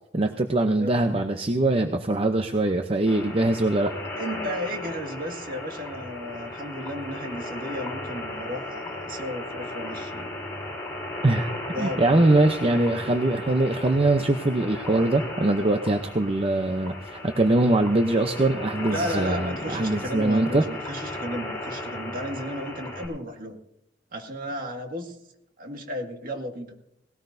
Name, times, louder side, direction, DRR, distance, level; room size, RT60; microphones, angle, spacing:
voice 1, 0.1-3.9 11.2-20.7, right 2 dB, 30° right, 6 dB, 0.7 m, -22 dB
sound 1, 3.1-23.1, left 1 dB, 15° left, 4.4 m, -36 dB
voice 2, 4.2-10.4 11.7-12.2 12.6-12.8 18.9-23.6 24.1-25.2 25.6-26.7, equal, 50° right, 3 dB, 1.9 m, -34 dB
19.0 x 17.5 x 2.7 m, 0.76 s
head